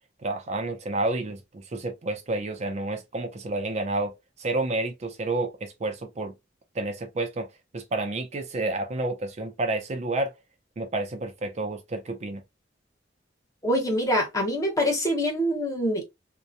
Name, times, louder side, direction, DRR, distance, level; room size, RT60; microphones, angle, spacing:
voice 1, 0.2-4.1 4.4-6.3 6.8-7.5 7.7-10.3 10.8-12.4, right 2 dB, 40° right, 0.5 m, -30 dB
voice 2, 13.6-16.0, equal, 20° left, 0.8 m, -25 dB
2.8 x 2.1 x 2.4 m
head